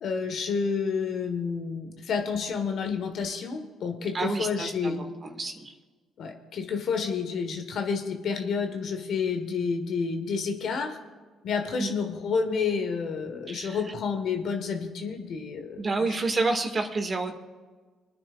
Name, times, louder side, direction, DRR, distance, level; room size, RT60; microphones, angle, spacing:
voice 1, 0.0-5.0 6.2-11.0 11.4-16.2, left 5 dB, 60° left, 5 dB, 1.5 m, -30 dB
voice 2, 4.1-4.9 5.2-5.7 11.8-11.9 13.5-13.8 15.8-17.3, right 3 dB, 35° right, 4 dB, 2.1 m, -29 dB
25.0 x 9.8 x 2.5 m, 1.4 s
hypercardioid pair, 60°, 0 cm